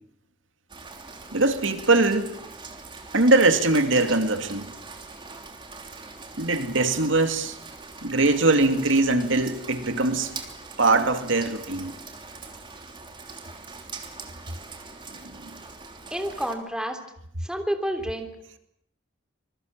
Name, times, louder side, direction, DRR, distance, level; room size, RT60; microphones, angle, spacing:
Rain, 0.7-16.5, right 4 dB, 25° right, 3.2 m, -42 dB
voice 1, 1.3-2.3 3.1-4.7 6.4-7.6 8.0-10.3 10.8-11.9 15.4-15.6, right 2 dB, 80° right, 7 dB, 2.4 m, -21 dB
voice 2, 16.1-17.0 17.4-18.3, equal, 5° right, 5 dB, 3.3 m, -29 dB
26.0 x 22.5 x 7.4 m, 0.71 s
head